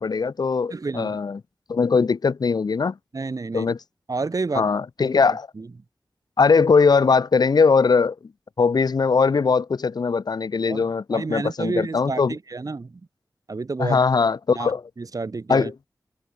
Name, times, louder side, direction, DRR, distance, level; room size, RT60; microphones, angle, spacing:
voice 1, 0.0-1.4 1.7-3.0 3.5-3.8 4.5-5.5 6.4-8.1 8.6-12.3 13.8-14.8 15.5-15.9, left 5 dB, 80° left, 1.5 m, -20 dB
voice 2, 0.7-1.2 3.1-3.7 4.1-4.7 5.3-5.7 10.7-13.0 13.5-14.0 14.5-14.7 15.0-15.7, right 3 dB, 60° right, 3.4 m, -30 dB
wide cardioid pair, 70°, 7 cm